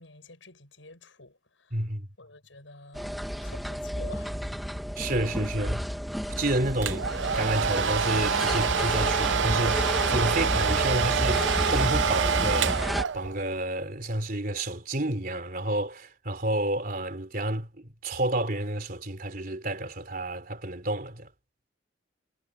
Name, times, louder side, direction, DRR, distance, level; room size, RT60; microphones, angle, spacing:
voice 1, 0.0-1.9 2.2-4.5, left 2 dB, 80° left, 7.4 m, -49 dB
voice 2, 1.7-2.1 5.0-5.8 6.4-7.1 7.3-12.8 13.1-21.3, right 1 dB, 45° right, 3.3 m, -30 dB
sound 1, 2.9-13.0, equal, ahead, 1.6 m, -31 dB
Domestic sounds home sounds, 6.8-13.5, right 6 dB, 75° right, 0.6 m, -26 dB
head